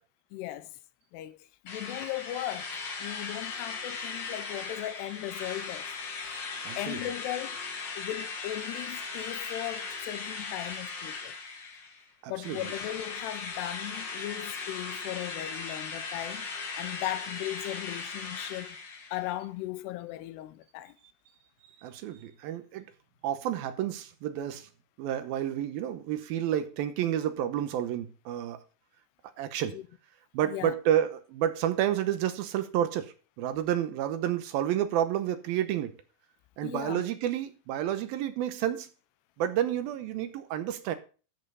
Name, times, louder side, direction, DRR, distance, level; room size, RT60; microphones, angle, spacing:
voice 1, 0.3-0.7 1.1-1.4 1.6-6.4 6.8-11.3 12.3-18.8 19.1-21.0 29.7-29.8 30.4-30.7 36.6-37.0, left 14 dB, 90° left, 2.8 m, -37 dB
Drill, 1.7-12.0 12.4-19.3, left 4 dB, 50° left, 2.6 m, -38 dB
voice 2, 6.6-7.0 12.2-12.7 21.8-22.9 23.2-24.7 25.0-28.6 29.4-29.8 30.3-35.9 36.6-38.9 39.4-41.0, right 11 dB, 75° right, 2.5 m, -30 dB
13.5 x 5.5 x 5.5 m
omnidirectional pair, 4.6 m